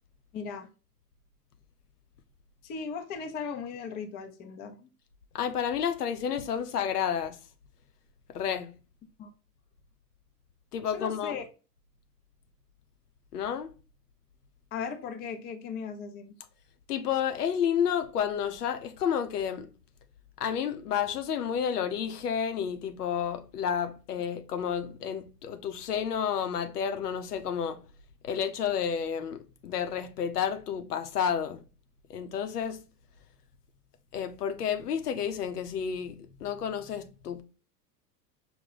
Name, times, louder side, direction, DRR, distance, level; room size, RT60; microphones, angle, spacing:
voice 1, 0.3-0.7 2.6-4.9 9.2-9.3 10.9-11.4 14.7-16.4, left 6 dB, 20° left, 0.5 m, -37 dB
voice 2, 5.3-7.4 8.3-8.7 10.7-11.4 13.3-13.7 16.9-19.7 20.4-27.8 28.2-31.6 32.1-32.8 34.1-37.4, left 8 dB, 70° left, 0.7 m, -30 dB
5.4 x 2.2 x 3.8 m
figure-of-eight pair, 90°, 49 cm